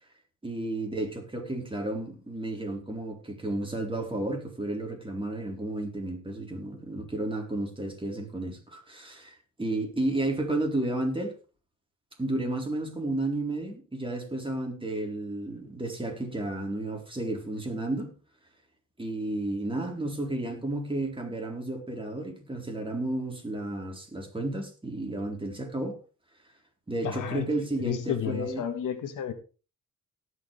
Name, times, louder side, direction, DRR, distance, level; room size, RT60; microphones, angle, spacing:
voice 1, 0.4-11.3 12.2-18.1 19.0-26.0 26.9-28.7, right 2 dB, 15° right, 3.9 m, -32 dB
voice 2, 27.0-29.3, left 8 dB, 85° left, 1.7 m, -32 dB
18.5 x 6.6 x 3.4 m
cardioid pair, 70°, 31 cm